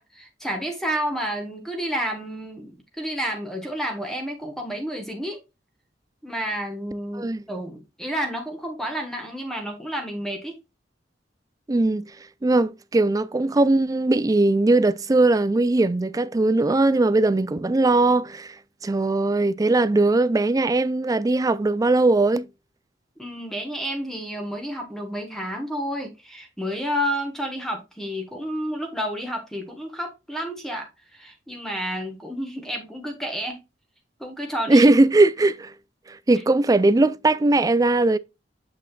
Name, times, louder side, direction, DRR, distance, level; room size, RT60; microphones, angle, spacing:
voice 1, 0.0-5.4 6.2-10.6 23.2-33.6 34.2-34.9, equal, 5° left, 1.4 m, -30 dB
voice 2, 11.7-12.1 12.4-18.5 18.8-22.5 34.7-35.7 36.1-38.2, right 2 dB, 20° right, 0.4 m, -19 dB
7.8 x 6.1 x 2.4 m
head